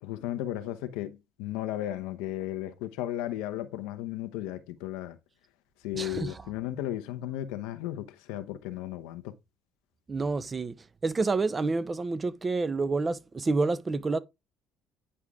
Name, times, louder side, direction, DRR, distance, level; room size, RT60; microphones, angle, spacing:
voice 1, 0.0-5.2 5.8-9.3, left 13 dB, 80° left, 0.9 m, -35 dB
voice 2, 5.9-6.4 10.1-10.7 11.0-14.2, right 3 dB, 30° right, 0.9 m, -28 dB
9.8 x 4.7 x 3.6 m
hypercardioid pair, 65°, 0 cm